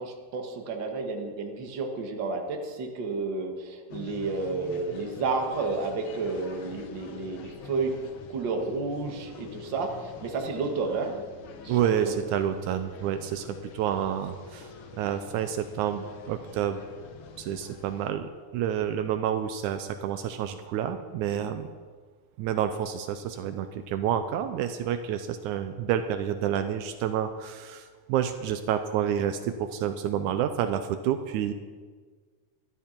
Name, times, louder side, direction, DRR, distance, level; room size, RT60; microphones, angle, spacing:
voice 1, 0.0-8.0 8.3-11.2 11.6-12.2, right 3 dB, 45° right, 2 dB, 1.7 m, -31 dB
sound 1, 3.9-18.1, left 5 dB, 85° left, 1.1 m, -46 dB
voice 2, 11.7-14.7 15.0-16.8 17.4-21.7 22.4-31.5, right 9 dB, 80° right, 9 dB, 2.0 m, -29 dB
14.0 x 12.5 x 4.4 m, 1.5 s
omnidirectional pair, 3.6 m